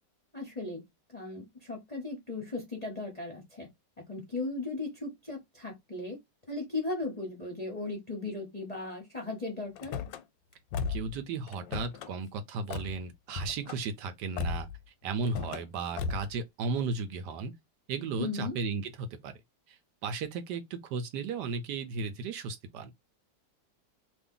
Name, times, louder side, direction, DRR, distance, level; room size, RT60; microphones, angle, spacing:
voice 1, 0.3-0.8 1.1-3.7 4.1-6.2 6.5-9.9 18.2-18.5, left 3 dB, 35° left, 0.7 m, -37 dB
Car / Slam, 9.8-10.2 10.7-11.2 11.5-12.1 12.7-12.9 13.3-13.8 14.4-14.8 15.2-15.6 16.0-16.3, left 5 dB, 90° left, 1.3 m, -35 dB
voice 2, 10.9-17.5 17.9-19.3 19.7-22.9, right 4 dB, 75° right, 1.1 m, -35 dB
2.8 x 2.5 x 3.6 m
omnidirectional pair, 2.0 m